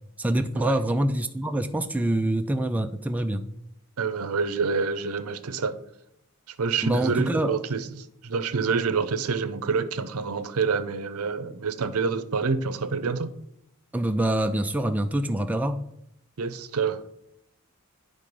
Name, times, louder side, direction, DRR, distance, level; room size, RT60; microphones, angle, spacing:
voice 1, 0.2-3.5 6.8-7.5 13.9-15.8, right 1 dB, 5° right, 0.3 m, -25 dB
voice 2, 4.0-5.7 6.6-13.3 16.4-17.0, right 5 dB, 75° right, 0.6 m, -27 dB
10.0 x 3.7 x 5.3 m
head